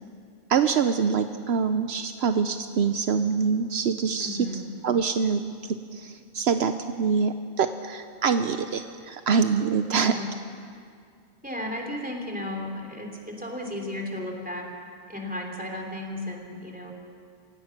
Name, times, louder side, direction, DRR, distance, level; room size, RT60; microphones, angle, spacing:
voice 1, 0.5-4.4 4.8-10.1, right 6 dB, 70° right, 9 dB, 0.9 m, -25 dB
voice 2, 4.2-4.6 9.8-10.3 11.4-14.7 15.1-16.9, left 1 dB, 10° right, 0 dB, 3.1 m, -34 dB
27.5 x 16.5 x 5.9 m, 2.2 s
omnidirectional pair, 1.1 m